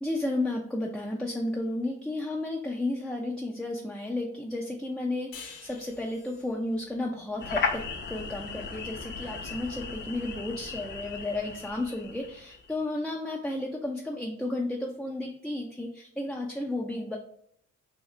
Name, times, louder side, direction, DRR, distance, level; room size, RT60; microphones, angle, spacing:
voice 1, 0.0-17.2, left 2 dB, 5° left, -1 dB, 0.4 m, -33 dB
sound 1, 5.3-8.5, left 6 dB, 80° left, 0.7 m, -49 dB
sound 2, 7.4-12.7, left 5 dB, 35° left, 0.7 m, -36 dB
3.7 x 2.1 x 3.1 m, 0.65 s
cardioid pair, 90°, 30 cm